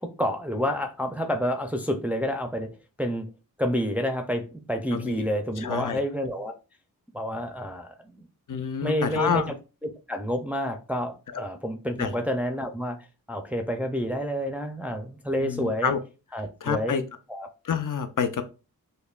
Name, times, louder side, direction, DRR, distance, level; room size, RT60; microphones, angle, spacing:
voice 1, 0.0-2.7 3.0-3.3 3.6-6.6 7.1-8.3 8.8-9.4 10.1-13.0 13.3-15.9 16.3-17.0 17.3-17.5, equal, 5° right, 5 dB, 0.4 m, -29 dB
voice 2, 4.9-5.3 5.6-6.0 8.5-9.5 11.3-11.4 12.0-12.1 15.4-16.0 16.6-17.0 17.6-18.4, left 7 dB, 60° left, 9 dB, 0.5 m, -28 dB
5.3 x 2.1 x 2.4 m, 0.32 s
wide cardioid pair, 50°, 36 cm